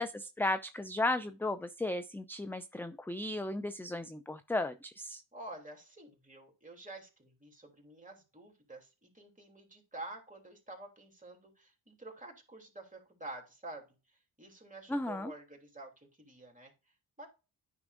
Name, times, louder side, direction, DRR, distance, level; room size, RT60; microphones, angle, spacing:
voice 1, 0.0-5.2 14.9-15.3, left 2 dB, 5° left, 0.4 m, -35 dB
voice 2, 5.3-16.7 17.2-17.3, right 2 dB, 20° right, 3.1 m, -49 dB
9.8 x 5.8 x 2.6 m
cardioid pair, 65°, 44 cm